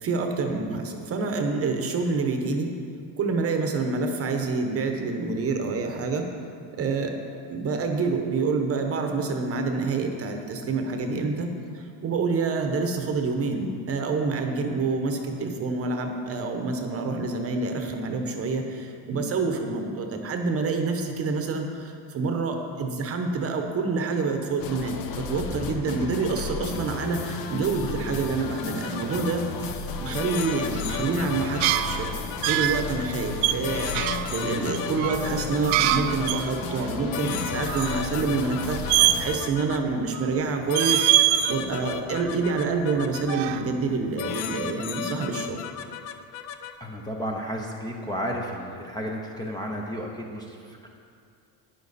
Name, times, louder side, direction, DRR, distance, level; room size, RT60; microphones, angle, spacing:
voice 1, 0.0-2.7 3.2-6.3 6.7-7.1 7.5-41.1 41.5-45.6, right 4 dB, 30° right, 4 dB, 1.0 m, -27 dB
sound 1, 24.6-39.4, left 5 dB, 50° left, 0.9 m, -34 dB
sound 2, 28.6-29.3 30.1-32.8 33.6-36.3 37.1-39.8 40.7-43.4 44.2-46.8, left 9 dB, 85° left, 0.8 m, -35 dB
sound 3, 31.4-32.9 33.4-36.5 36.8-36.9 37.2-38.0 38.9-39.6 39.9-40.4 40.7-41.6 41.9-43.0 43.2-44.0, right 14 dB, 85° right, 0.6 m, -24 dB
voice 2, 46.8-50.9, equal, 10° left, -1 dB, 0.7 m, -33 dB
12.0 x 10.5 x 4.2 m, 2.4 s
cardioid pair, 160°, 43 cm